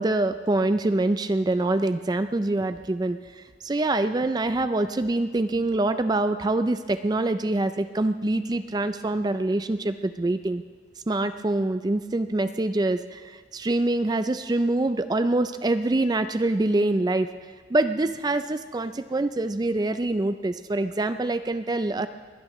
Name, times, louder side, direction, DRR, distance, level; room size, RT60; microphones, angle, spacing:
voice 1, 0.0-10.6 11.1-17.3 17.7-22.1, right 2 dB, 20° right, 10 dB, 0.4 m, -25 dB
22.0 x 17.5 x 3.1 m, 1.5 s
head